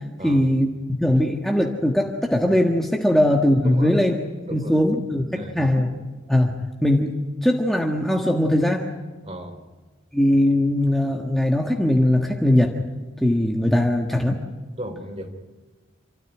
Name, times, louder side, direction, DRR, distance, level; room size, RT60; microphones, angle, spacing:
voice 1, 0.2-4.1 4.5-5.2 5.5-5.9 6.3-6.5 6.8-7.2 7.4-8.9 10.1-12.7 13.2-14.4, left 1 dB, ahead, 0 dB, 1.5 m, -20 dB
voice 2, 3.6-4.0 4.5-4.8 5.3-5.6 9.2-9.6 14.8-15.3, equal, 35° right, 6 dB, 3.4 m, -35 dB
28.0 x 13.5 x 9.9 m, 1.3 s
head